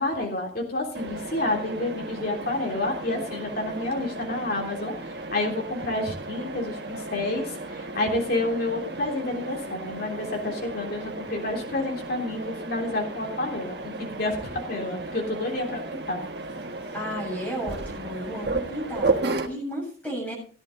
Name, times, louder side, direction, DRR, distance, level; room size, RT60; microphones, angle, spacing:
voice 1, 0.0-16.2, left 2 dB, 55° left, 0 dB, 3.4 m, -29 dB
Mechanisms, 0.9-19.5, right 2 dB, 65° right, 1.4 m, -34 dB
voice 2, 16.9-20.3, equal, 10° left, -2 dB, 7.9 m, -33 dB
16.0 x 11.0 x 3.9 m, 0.40 s
head